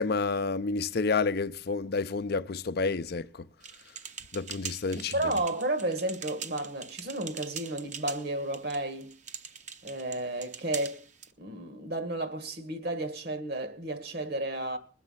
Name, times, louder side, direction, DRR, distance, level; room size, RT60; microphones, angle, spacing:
voice 1, 0.0-3.5 4.3-5.3, left 4 dB, 55° left, 0.5 m, -29 dB
sound 1, 3.6-11.3, right 7 dB, 40° right, 0.9 m, -43 dB
voice 2, 5.1-9.1 9.8-11.0 11.4-14.8, right 1 dB, 60° right, 1.7 m, -32 dB
20.5 x 7.3 x 5.7 m
head